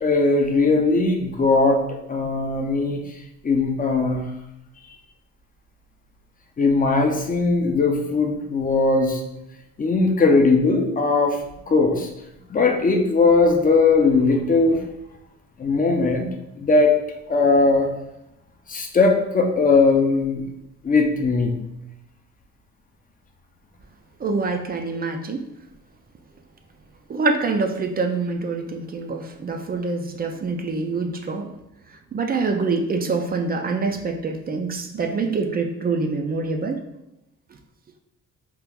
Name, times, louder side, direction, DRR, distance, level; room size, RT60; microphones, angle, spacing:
voice 1, 0.0-1.8 2.1-3.0 3.4-4.2 6.6-9.2 9.8-11.4 11.7-12.1 12.5-14.8 15.6-16.3 16.6-16.9 17.3-17.9 18.7-20.4 20.8-21.5, left 3 dB, 30° left, 2 dB, 0.5 m, -19 dB
voice 2, 24.2-25.4 27.1-31.5 32.1-36.8, right 4 dB, 30° right, 4 dB, 0.4 m, -25 dB
2.9 x 2.4 x 3.5 m, 0.86 s
cardioid pair, 90°, 30 cm